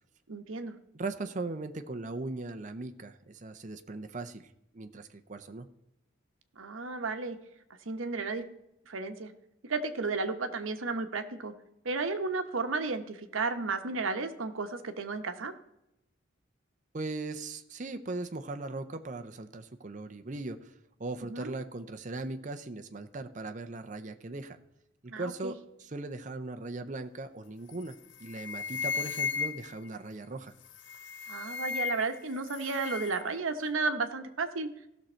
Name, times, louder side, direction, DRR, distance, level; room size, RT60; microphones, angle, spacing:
voice 1, 0.3-0.7 6.6-7.4 7.9-8.5 8.9-9.3 9.7-11.5 11.8-15.5 21.2-21.5 25.1-25.6 31.3-34.7, right 3 dB, 80° right, 7 dB, 0.9 m, -33 dB
voice 2, 0.9-4.5 4.7-5.7 16.9-20.6 21.0-24.6 25.0-28.0 28.2-30.5, right 2 dB, 40° right, 7 dB, 0.6 m, -39 dB
sound 1, 27.7-27.9 28.2-29.9 30.7-32.2 32.4-33.2, left 6 dB, 65° left, 0.6 m, -35 dB
15.0 x 6.4 x 4.3 m, 0.86 s
head